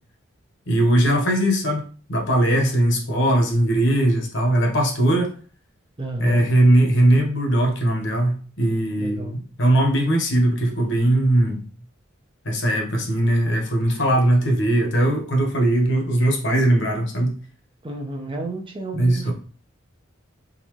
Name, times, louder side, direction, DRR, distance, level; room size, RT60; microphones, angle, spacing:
voice 1, 0.7-1.8 2.1-5.3 6.2-11.6 12.4-17.4 18.9-19.3, right 1 dB, 60° left, 2 dB, 1.2 m, -19 dB
voice 2, 6.0-6.5 9.0-9.4 17.8-19.3, right 2 dB, 25° right, 2 dB, 0.7 m, -31 dB
4.0 x 3.9 x 3.1 m, 0.39 s
head